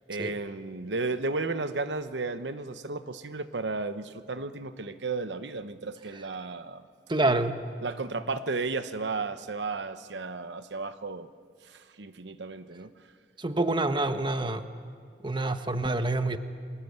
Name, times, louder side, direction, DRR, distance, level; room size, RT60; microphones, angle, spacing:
voice 1, 0.1-6.8 7.3-7.4 7.8-11.3 11.7-12.9, right 3 dB, 80° right, 11 dB, 1.0 m, -34 dB
voice 2, 7.1-7.6 13.4-14.6 15.2-16.4, right 2 dB, 25° right, 8 dB, 1.1 m, -27 dB
28.0 x 23.5 x 8.1 m, 2.1 s
head